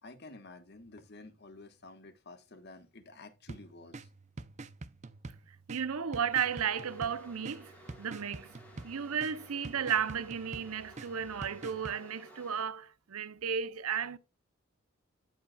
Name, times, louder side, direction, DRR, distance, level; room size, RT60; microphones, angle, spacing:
voice 1, 0.0-4.1, left 2 dB, 50° left, 1.3 m, -51 dB
sound 1, 3.5-12.0, right 3 dB, 30° right, 0.5 m, -47 dB
voice 2, 5.7-7.7 8.0-14.2, right 7 dB, 80° right, 0.7 m, -34 dB
sound 2, 6.3-12.6, equal, 5° left, 2.3 m, -56 dB
15.0 x 5.1 x 2.3 m
head